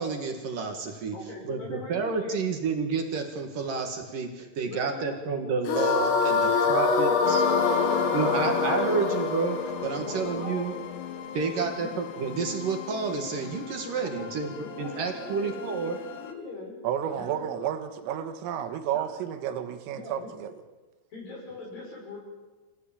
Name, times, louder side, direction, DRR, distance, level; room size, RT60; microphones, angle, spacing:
voice 1, 0.0-1.2 1.4-7.4 8.1-10.7 11.3-16.0, right 5 dB, 55° right, 5 dB, 2.7 m, -30 dB
voice 2, 1.1-2.5 4.4-5.2 6.3-9.1 9.8-10.8 11.4-11.9 13.8-14.3 14.6-16.8 17.1-17.5 18.9-19.1 19.9-20.3 21.1-22.2, left 2 dB, 45° left, -1 dB, 7.2 m, -41 dB
sound 1, 5.7-10.9, left 4 dB, 80° left, 5.4 m, -25 dB
sound 2, 7.2-16.3, left 8 dB, 65° left, 3.4 m, -37 dB
voice 3, 16.8-20.5, right 9 dB, 80° right, 8 dB, 4.1 m, -31 dB
26.0 x 16.0 x 9.0 m, 1.2 s
omnidirectional pair, 5.9 m